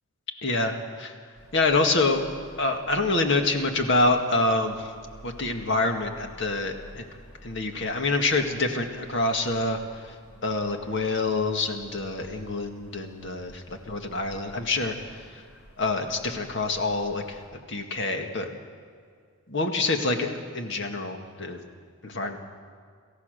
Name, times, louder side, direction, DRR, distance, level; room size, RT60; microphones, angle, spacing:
voice 1, 0.4-1.1 1.5-2.3 2.6-4.9 5.2-7.1 7.4-9.8 10.4-15.0 15.8-17.2 17.7-18.6 19.5-21.6 22.0-22.4, left 2 dB, 55° left, 4 dB, 1.9 m, -26 dB
sound 1, 1.3-17.5, equal, 85° left, 7.2 m, -51 dB
27.5 x 14.5 x 6.6 m, 2.1 s
head